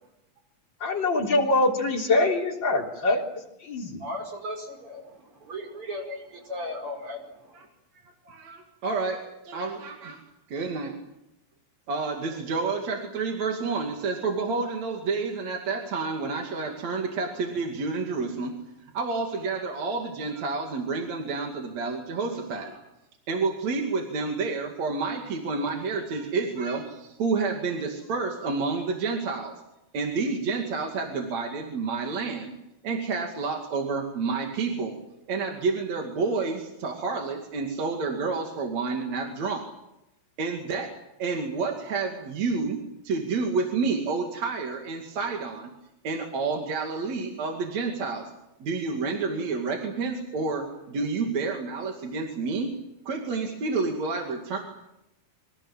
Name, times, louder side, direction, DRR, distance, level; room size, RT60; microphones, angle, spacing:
voice 1, 0.8-3.2 3.6-4.0, left 2 dB, 30° left, 0 dB, 3.9 m, -24 dB
voice 2, 4.0-7.7, left 1 dB, 35° right, 2 dB, 5.8 m, -37 dB
voice 3, 8.3-10.2 10.5-10.9 11.9-18.5 18.9-22.8 23.3-29.5 29.9-32.5 32.8-35.0 35.3-39.7 40.4-40.9 41.2-42.8 43.0-45.7 46.0-48.3 48.6-52.7 53.1-54.6, right 4 dB, 50° right, 2 dB, 3.5 m, -29 dB
26.0 x 25.0 x 7.4 m, 0.87 s
omnidirectional pair, 4.3 m